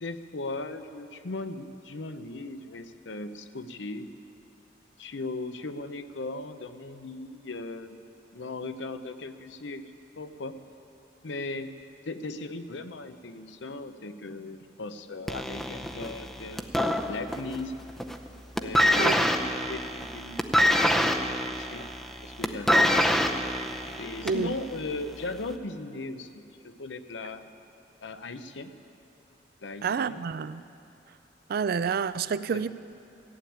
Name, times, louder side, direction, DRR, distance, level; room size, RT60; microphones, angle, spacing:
voice 1, 0.0-4.1 5.0-8.0 8.3-10.6 11.2-11.7 12.1-16.7 17.1-17.8 18.6-20.7 21.3-21.9 22.2-23.1 24.0-27.5 28.0-28.7 29.6-30.2 32.5-32.6, left 2 dB, 75° left, 10 dB, 0.7 m, -38 dB
sound 1, 15.3-17.6 17.9-18.3 18.6-24.5 25.3-25.4, equal, ahead, 0.6 m, -25 dB
voice 2, 19.0-19.3 24.2-24.5 29.8-30.6 31.5-32.7, right 6 dB, 55° right, 15 dB, 0.4 m, -28 dB
15.0 x 8.6 x 8.6 m, 2.8 s
head